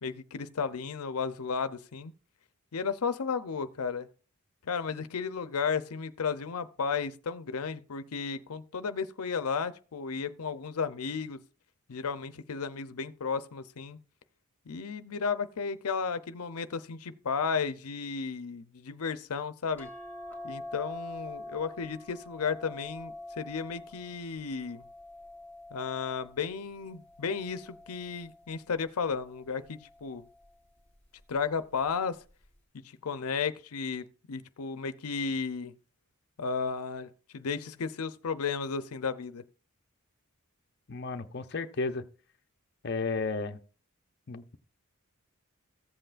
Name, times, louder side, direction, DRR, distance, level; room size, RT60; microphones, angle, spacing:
voice 1, 0.0-2.1 2.7-4.1 4.6-11.4 11.9-14.0 14.7-19.9 20.4-24.8 25.7-30.2 31.3-32.2 32.8-35.7 36.4-39.4, left 5 dB, 90° left, 0.6 m, -34 dB
sound 1, 19.8-26.4 27.0-28.4 29.7-30.1 30.4-30.5, left 1 dB, 10° left, 1.9 m, -45 dB
voice 2, 40.9-42.0 42.8-43.6 44.3-44.6, left 3 dB, 50° left, 0.6 m, -33 dB
15.0 x 7.9 x 2.5 m
head